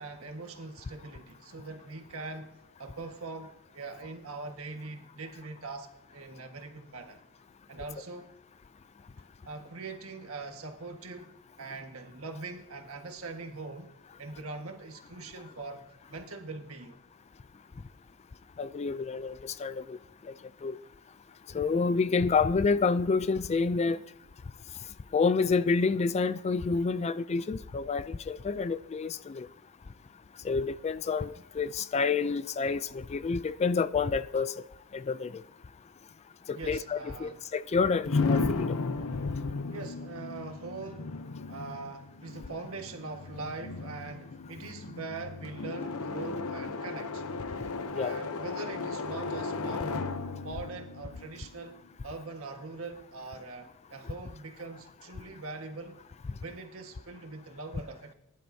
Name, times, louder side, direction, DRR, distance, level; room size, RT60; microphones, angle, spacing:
voice 1, 0.0-7.2 7.7-8.3 9.4-13.9 14.2-17.0 36.5-37.4 39.7-41.1 41.5-47.2 47.9-49.9 50.4-56.0 56.3-58.1, right 3 dB, 70° right, 1.6 m, -42 dB
voice 2, 18.6-20.0 20.6-20.8 21.5-24.0 25.1-29.5 30.4-34.5 34.9-35.3 36.5-38.8 47.9-48.1, left 4 dB, 30° left, 0.3 m, -28 dB
sound 1, 38.1-51.9, left 4 dB, 70° left, 0.8 m, -35 dB
20.5 x 11.0 x 2.7 m
head